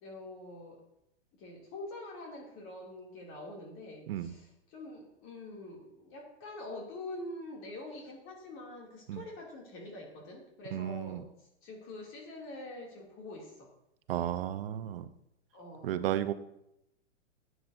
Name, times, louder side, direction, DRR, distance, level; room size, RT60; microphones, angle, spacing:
voice 1, 0.0-0.8 1.4-13.7 15.5-16.1, left 2 dB, 40° left, -1 dB, 2.6 m, -45 dB
voice 2, 10.7-11.2 14.1-15.1 15.8-16.3, right 11 dB, 55° right, 11 dB, 0.8 m, -33 dB
11.5 x 9.3 x 2.6 m, 0.81 s
hypercardioid pair, 120°, 34 cm